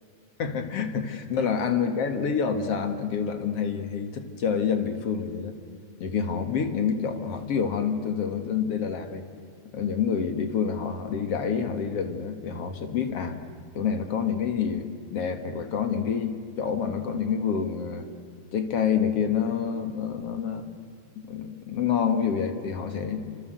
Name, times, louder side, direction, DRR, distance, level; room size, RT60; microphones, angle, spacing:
voice 1, 0.4-5.6 6.0-9.2 9.7-13.4 13.7-18.1 18.5-20.7 21.2-23.3, left 7 dB, 50° left, 8 dB, 2.6 m, -27 dB
28.5 x 25.0 x 8.1 m, 2.4 s
omnidirectional pair, 3.9 m